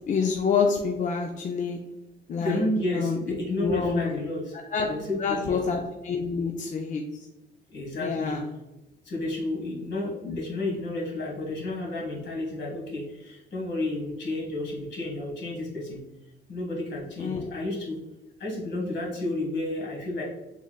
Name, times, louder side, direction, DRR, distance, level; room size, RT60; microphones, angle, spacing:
voice 1, 0.1-1.8 2.3-2.6 2.9-3.2 3.6-4.1 4.7-4.9 5.2-7.0 8.0-8.5 10.3-10.4 17.2-17.5, left 5 dB, 40° left, 2 dB, 0.4 m, -27 dB
voice 2, 2.4-4.6 4.8-5.6 7.7-8.4 9.0-16.0 16.5-18.0 18.4-20.2, left 1 dB, 65° left, -2 dB, 1.5 m, -31 dB
3.8 x 3.2 x 2.3 m, 0.97 s
cardioid pair, 90°, 20 cm